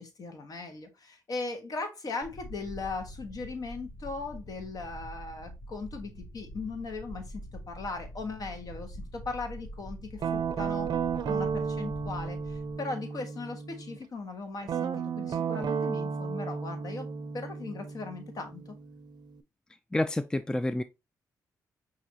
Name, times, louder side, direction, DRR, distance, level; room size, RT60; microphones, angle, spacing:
voice 1, 0.0-10.9 11.2-17.1 17.3-18.6, left 3 dB, 55° left, 1.3 m, -38 dB
sound 1, 2.2-12.7, equal, 70° left, 1.2 m, -45 dB
Guitar, 10.2-14.0 14.6-19.4, right 6 dB, 65° right, 0.5 m, -33 dB
voice 2, 19.9-20.8, left 1 dB, 10° left, 0.4 m, -28 dB
5.7 x 2.7 x 2.8 m
supercardioid pair, 60°, 8 cm